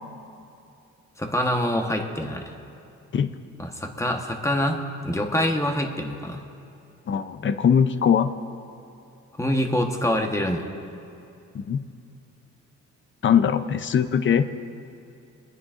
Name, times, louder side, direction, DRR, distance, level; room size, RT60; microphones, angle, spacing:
voice 1, 1.2-2.5 3.6-6.4 9.4-10.7, equal, 10° left, 3 dB, 1.2 m, -25 dB
voice 2, 7.1-8.3 11.5-11.8 13.2-14.5, left 7 dB, 40° left, 11 dB, 0.6 m, -21 dB
27.0 x 9.6 x 2.6 m, 2.6 s
cardioid pair, 90°, 30 cm